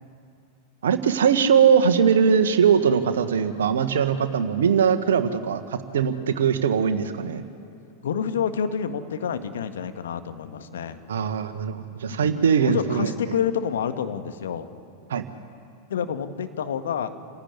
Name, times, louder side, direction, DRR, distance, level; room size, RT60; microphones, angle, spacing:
voice 1, 0.8-7.4 11.1-13.3 15.1-15.2, right 7 dB, 65° right, 9 dB, 1.6 m, -21 dB
voice 2, 8.0-11.0 12.1-14.7 15.9-17.1, left 7 dB, 60° left, 9 dB, 1.7 m, -28 dB
28.0 x 16.5 x 9.7 m, 2.5 s
figure-of-eight pair, 90°, 0 cm